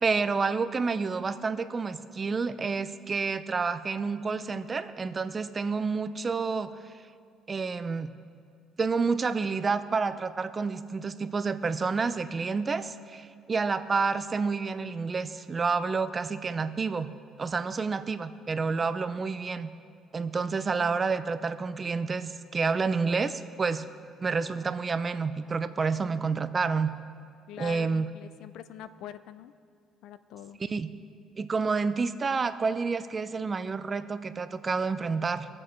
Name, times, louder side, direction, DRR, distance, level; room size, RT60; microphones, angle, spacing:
voice 1, 0.0-6.7 7.5-8.1 8.8-17.1 17.4-19.7 20.1-23.9 24.2-26.9 27.6-28.1 30.6-30.9 31.4-35.5, right 4 dB, 30° right, 13 dB, 0.5 m, -29 dB
voice 2, 27.5-29.5 30.0-30.6, left 10 dB, 80° left, 14 dB, 0.5 m, -44 dB
21.0 x 7.6 x 4.4 m, 2.2 s
cardioid pair, 110°, 0 cm